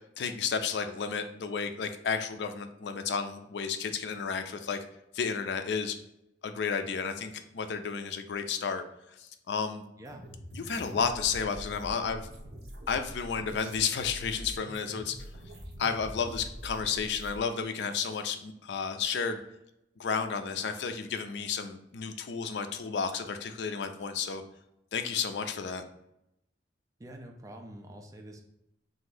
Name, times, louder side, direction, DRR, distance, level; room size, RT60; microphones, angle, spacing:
voice 1, 0.2-4.8 5.1-6.0 6.4-8.8 9.2-9.8 10.5-12.2 12.9-15.2 15.8-19.4 20.0-24.4 24.9-25.8, left 6 dB, 75° left, 8 dB, 0.4 m, -32 dB
sound 1, 10.0-17.4, equal, 60° right, 0.6 m, -44 dB
voice 2, 27.0-28.4, right 1 dB, 20° right, 2 dB, 0.4 m, -46 dB
2.8 x 2.5 x 3.8 m, 0.82 s
head